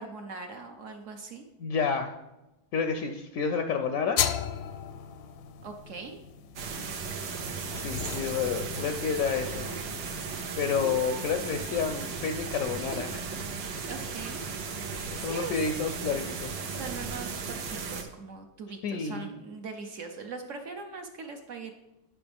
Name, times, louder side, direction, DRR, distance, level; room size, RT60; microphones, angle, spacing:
voice 1, 0.0-1.4 5.6-6.2 13.9-14.4 15.2-15.6 16.6-21.7, right 4 dB, 60° right, 4 dB, 0.9 m, -41 dB
voice 2, 1.6-2.2 2.7-4.2 7.7-9.7 10.6-13.3 15.1-16.7 18.8-19.3, left 6 dB, 70° left, 6 dB, 0.8 m, -30 dB
sound 1, 4.2-10.1, left 10 dB, 85° left, 1.3 m, -36 dB
sound 2, 6.6-18.0, right 5 dB, 75° right, 1.6 m, -36 dB
10.5 x 5.9 x 3.5 m, 0.99 s
omnidirectional pair, 2.0 m